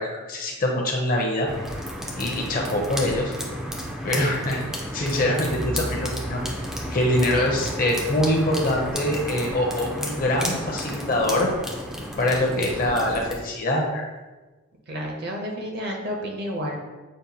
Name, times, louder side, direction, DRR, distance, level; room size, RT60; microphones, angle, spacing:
voice 1, 0.0-1.5 2.2-3.3 4.0-4.6 4.9-6.4 6.9-11.5 12.2-14.1, left 1 dB, 40° left, 0 dB, 0.6 m, -24 dB
sound 1, 1.5-13.3, equal, ahead, 0.3 m, -32 dB
voice 2, 14.9-16.8, equal, 50° right, 1 dB, 0.6 m, -31 dB
6.3 x 2.1 x 2.7 m, 1.2 s
head